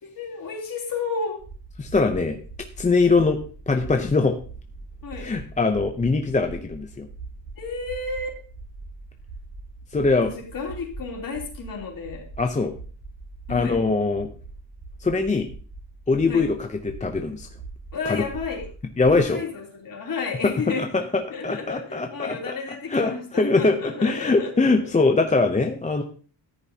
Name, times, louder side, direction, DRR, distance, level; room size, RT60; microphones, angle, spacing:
voice 1, 0.0-1.4 5.0-5.3 7.5-8.4 10.2-12.2 13.5-13.8 16.3-16.4 17.9-18.7 19.0-20.9 21.3-24.9, left 4 dB, 45° left, -1 dB, 3.3 m, -32 dB
sound 1, 1.4-19.2, right 3 dB, 55° right, 4.5 m, -42 dB
voice 2, 1.8-2.4 2.8-3.4 3.7-4.4 5.2-7.1 9.9-10.3 12.4-12.7 13.5-14.3 15.0-15.5 16.1-17.5 18.1-18.2 19.0-19.4 20.4-20.5 20.8-22.5 22.9-26.0, left 3 dB, 15° left, 4 dB, 0.6 m, -22 dB
14.0 x 10.5 x 2.8 m, 0.40 s
wide cardioid pair, 175°, 45 cm